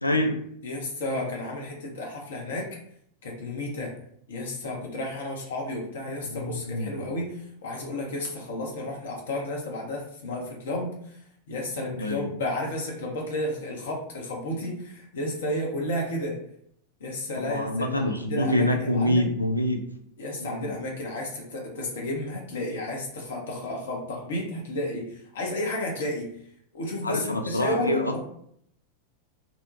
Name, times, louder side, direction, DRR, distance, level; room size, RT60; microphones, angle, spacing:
voice 1, 0.0-0.4 6.1-7.2 12.0-12.3 17.4-19.8 20.4-20.7 27.0-28.2, left 1 dB, 85° left, 4 dB, 0.3 m, -26 dB
voice 2, 0.6-2.7 3.2-3.9 4.3-11.2 11.5-16.4 17.0-19.3 20.2-26.2 26.7-28.2, left 1 dB, 60° left, -1 dB, 0.7 m, -32 dB
2.6 x 2.1 x 2.6 m, 0.68 s
figure-of-eight pair, 90°, 0 cm